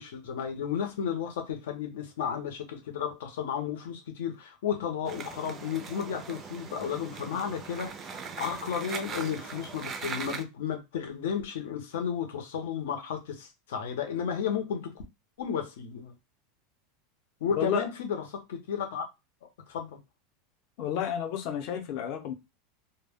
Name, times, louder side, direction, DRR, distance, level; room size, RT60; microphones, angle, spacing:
voice 1, 0.0-14.9 15.4-16.1 17.4-19.1 19.7-20.0, left 7 dB, 90° left, 0.8 m, -33 dB
sound 1, 5.0-10.4, right 5 dB, 20° right, 0.3 m, -40 dB
voice 2, 17.6-17.9 20.8-22.3, left 8 dB, 40° left, 0.6 m, -31 dB
2.2 x 2.1 x 3.4 m
supercardioid pair, 170°, 0 cm